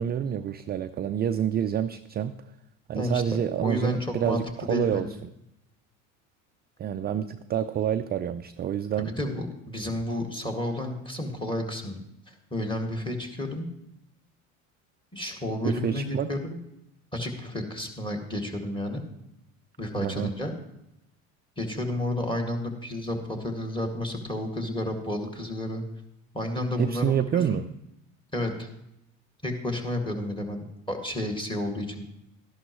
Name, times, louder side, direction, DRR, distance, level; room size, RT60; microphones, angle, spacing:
voice 1, 0.0-2.4 2.9-5.1 6.8-9.1 15.6-16.3 19.9-20.3 26.8-27.7, right 9 dB, 25° right, 9 dB, 0.3 m, -28 dB
voice 2, 3.6-4.4 4.7-5.2 9.0-12.0 12.3-13.7 15.1-16.6 17.1-19.0 19.8-20.5 21.6-25.8 26.3-27.6 28.3-28.7 29.4-32.0, left 1 dB, 10° left, 3 dB, 2.1 m, -31 dB
13.0 x 11.0 x 3.1 m, 0.85 s
hypercardioid pair, 80°, 41 cm